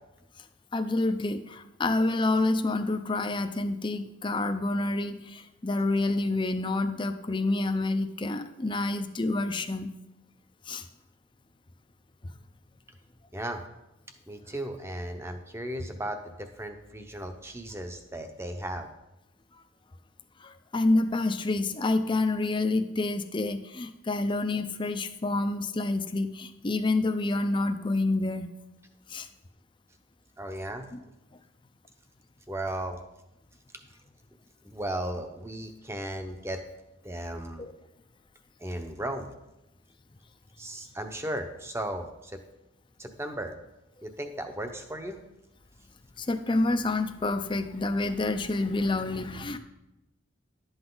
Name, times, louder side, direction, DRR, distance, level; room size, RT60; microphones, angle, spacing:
voice 1, 0.7-9.9 10.7-10.8 20.4-28.5 29.1-29.3 30.9-31.0 37.6-37.7 46.2-49.6, left 2 dB, 25° left, 9 dB, 0.6 m, -28 dB
voice 2, 13.3-13.6 14.3-18.9 30.4-30.9 32.5-33.0 34.6-36.6 37.0-37.7 38.6-39.3 40.6-42.4 43.0-43.6 44.0-45.2, right 1 dB, 15° right, 6 dB, 0.9 m, -36 dB
11.5 x 8.0 x 3.9 m, 0.95 s
head